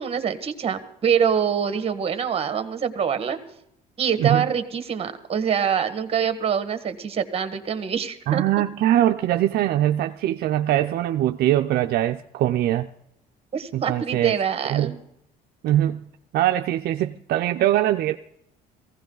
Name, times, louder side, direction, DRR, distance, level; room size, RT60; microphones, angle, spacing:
voice 1, 0.0-3.4 4.0-8.4 13.5-15.0, right 7 dB, 35° right, 10 dB, 1.6 m, -25 dB
voice 2, 8.3-12.9 13.7-14.4 14.7-14.9 15.6-16.1 16.3-18.2, right 13 dB, 70° right, 6 dB, 0.5 m, -22 dB
18.5 x 16.0 x 3.9 m, 0.77 s
cardioid pair, 110°, 17 cm